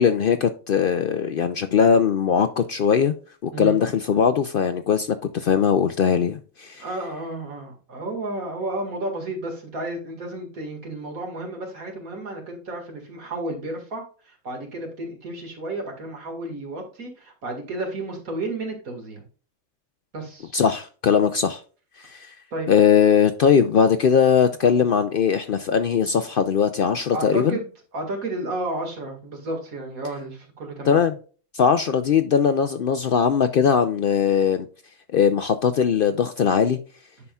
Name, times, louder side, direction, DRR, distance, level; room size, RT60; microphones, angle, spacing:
voice 1, 0.0-3.1 3.4-5.1 5.3-6.8 20.5-21.6 22.0-22.3 22.7-27.6 30.9-31.1 31.5-34.7 35.1-36.8, left 7 dB, 65° left, 0.5 m, -20 dB
voice 2, 6.8-19.2 20.1-20.5 22.5-22.7 27.1-31.0, right 2 dB, 80° right, 2.3 m, -32 dB
9.6 x 5.6 x 2.3 m
omnidirectional pair, 1.5 m